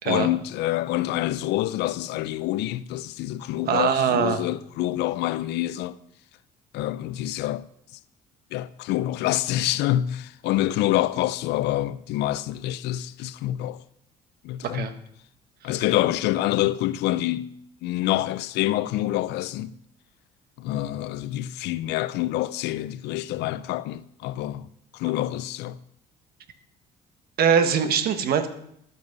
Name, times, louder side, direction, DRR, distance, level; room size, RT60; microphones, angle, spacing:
voice 1, 0.0-6.0 6.7-7.7 8.5-13.8 14.4-14.9 15.6-17.6 17.8-19.7 20.6-25.8, left 14 dB, 85° left, 0.5 m, -26 dB
voice 2, 3.7-4.4 14.6-14.9 15.7-15.8 27.4-28.5, right 7 dB, 65° right, 1.3 m, -22 dB
12.5 x 7.9 x 5.3 m
cardioid pair, 110°, 17 cm